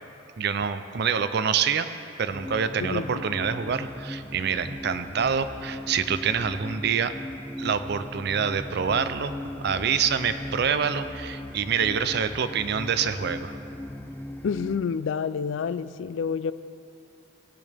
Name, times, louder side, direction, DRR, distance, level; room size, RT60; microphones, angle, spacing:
voice 1, 0.4-1.9 2.2-7.1 7.6-9.3 9.6-13.6, right 7 dB, 60° right, 11 dB, 0.5 m, -26 dB
sound 1, 2.3-14.8, left 1 dB, 10° left, 0.4 m, -38 dB
voice 2, 2.8-3.2 14.4-16.5, left 6 dB, 75° left, 15 dB, 0.3 m, -28 dB
17.5 x 8.6 x 3.4 m, 2.7 s
head